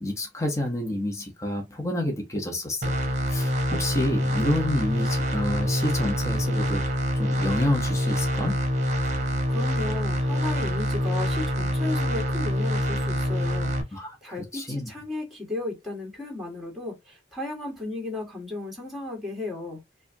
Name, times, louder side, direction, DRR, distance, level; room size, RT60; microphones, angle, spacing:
voice 1, 0.0-3.0 3.3-6.8 7.2-8.6 13.9-14.9, left 1 dB, 15° left, 0.8 m, -29 dB
sound 1, 2.8-13.8, equal, 40° right, 1.0 m, -26 dB
voice 2, 9.5-19.8, left 2 dB, ahead, 2.1 m, -35 dB
4.8 x 2.5 x 2.6 m
head